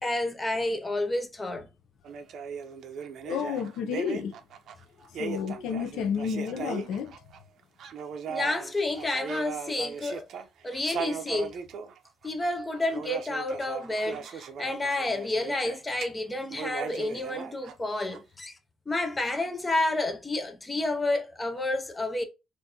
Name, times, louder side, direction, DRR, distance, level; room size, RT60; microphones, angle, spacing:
voice 1, 0.0-1.7 8.3-10.3 10.6-11.5 12.2-18.5 18.9-22.2, left 2 dB, 15° left, 0.5 m, -30 dB
sound 1, 2.0-7.4 7.8-16.1 16.5-18.2, right 6 dB, 60° right, 0.5 m, -38 dB
voice 2, 3.2-4.3 5.2-7.1, left 7 dB, 80° left, 0.5 m, -31 dB
3.6 x 2.5 x 2.7 m
cardioid pair, 155°, 0 cm